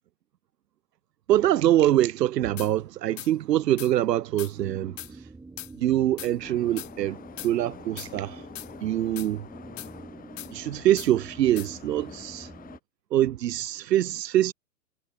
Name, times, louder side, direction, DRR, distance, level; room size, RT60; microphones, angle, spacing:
voice 1, 1.3-5.2 5.8-7.2 7.4-8.4 8.8-9.4 10.5-12.5 13.1-14.5, right 13 dB, 90° right, 0.6 m, -24 dB
sound 1, 2.6-2.7 3.2-3.3 3.8-3.9 4.4-4.5 5.0-5.1 5.6-5.7 6.2-6.3 6.8-6.9 7.4-7.5 8.0-8.1 8.6-8.7 9.2-9.3 9.8-9.9 10.4-10.5 11.0-11.1 11.6-11.7, left 14 dB, 50° left, 0.7 m, -39 dB
sound 2, 4.6-12.8, right 3 dB, 5° right, 6.9 m, -46 dB
Subway metro underground, 6.4-12.8, left 9 dB, 15° left, 5.6 m, -47 dB
hypercardioid pair, 130°, 48 cm